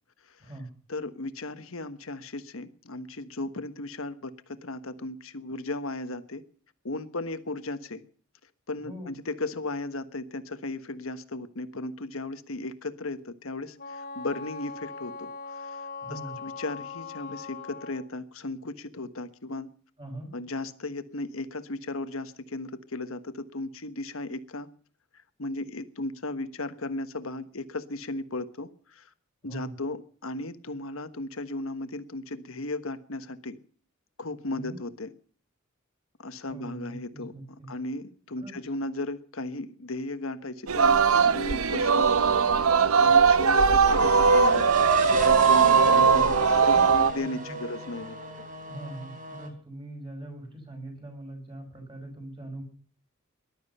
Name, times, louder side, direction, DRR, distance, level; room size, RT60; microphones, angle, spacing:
voice 1, 0.9-6.4 6.8-8.0 8.7-15.8 16.1-19.7 20.3-24.7 25.4-29.1 29.4-33.6 34.2-35.1 36.2-37.3 37.7-42.3 43.0-44.9 45.3-46.2 46.6-48.5, left 2 dB, 75° left, 11 dB, 1.3 m, -36 dB
voice 2, 8.8-9.1 16.0-16.4 20.0-20.3 29.4-29.8 34.5-34.8 36.5-37.7 38.4-38.6 45.6-46.4 46.7-46.9 47.2-47.6 48.7-52.6, right 1 dB, 25° right, 3 dB, 5.8 m, -41 dB
Wind instrument woodwind instrument, 13.8-18.1, left 4 dB, 45° left, 2.1 m, -40 dB
Singing, 40.7-47.1, right 5 dB, 90° right, 0.8 m, -20 dB
sound 1, 43.8-49.5, right 1 dB, 40° right, 3.4 m, -33 dB
19.5 x 12.0 x 5.5 m, 0.43 s
head